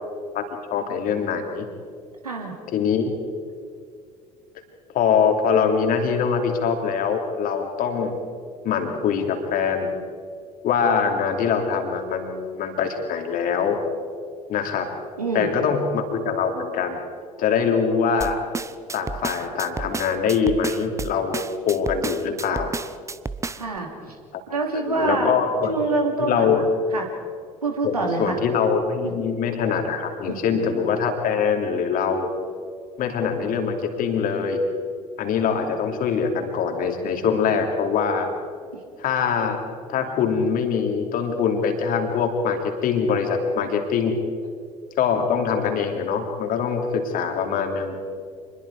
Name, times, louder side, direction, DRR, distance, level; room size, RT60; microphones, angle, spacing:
voice 1, 0.7-1.7 2.7-3.1 4.9-8.2 8.6-9.9 10.6-13.8 14.5-14.9 15.3-17.0 17.4-18.4 18.9-22.7 24.9-25.7 26.2-26.7 27.8-32.3 33.0-34.7 35.2-38.3 39.0-39.6 39.9-44.2 45.0-48.0, left 6 dB, 45° left, 4 dB, 2.9 m, -23 dB
voice 2, 2.2-2.5 15.2-15.8 23.6-23.9 24.5-25.4 25.7-26.5 26.9-27.1 27.6-28.4 29.0-29.1 30.3-30.4, right 3 dB, 80° right, 2 dB, 2.6 m, -25 dB
sound 1, 18.2-23.8, right 4 dB, 15° right, 0.8 m, -31 dB
27.0 x 21.0 x 4.9 m, 2.2 s
figure-of-eight pair, 60°, 19 cm